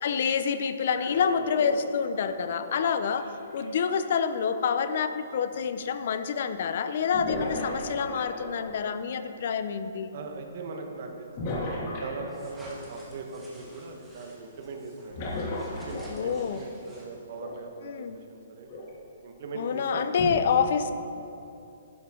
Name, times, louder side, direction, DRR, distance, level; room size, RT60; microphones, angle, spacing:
voice 1, 0.0-3.2 3.5-10.1 16.1-16.6 17.8-18.2 19.6-20.9, left 6 dB, 55° left, 10 dB, 0.6 m, -27 dB
sound 1, 0.9-3.6 5.5-5.6 7.1-8.9 11.4-12.7 15.1-16.6 17.4-17.5 18.7-18.9 20.2-20.3, left 1 dB, 40° left, 2.2 m, -35 dB
voice 2, 10.1-15.3 15.8-18.8 19.2-20.3, right 3 dB, 50° right, 3 dB, 1.4 m, -40 dB
sound 2, 12.3-17.4, right 1 dB, 5° right, 1.9 m, -50 dB
11.5 x 10.5 x 3.8 m, 2.7 s
hypercardioid pair, 160°, 0 cm